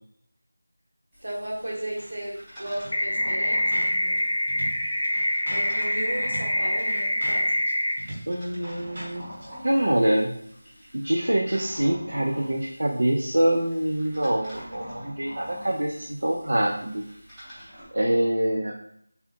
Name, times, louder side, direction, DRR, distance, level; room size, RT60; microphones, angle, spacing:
sound 1, 1.1-17.9, equal, 5° right, 0.5 m, -46 dB
voice 1, 1.2-4.2 5.5-7.5, right 1 dB, 70° right, -3 dB, 1.1 m, -35 dB
sound 2, 1.6-2.1 2.4-2.5 2.7-9.5, right 1 dB, 35° right, 0.8 m, -41 dB
sound 3, 2.9-7.9, equal, 80° left, 0.5 m, -25 dB
voice 2, 8.3-9.2 9.6-10.3 10.9-17.0 17.9-18.7, right 1 dB, 85° right, 0 dB, 0.4 m, -25 dB
3.4 x 2.4 x 2.6 m, 0.71 s
figure-of-eight pair, 180°, 0 cm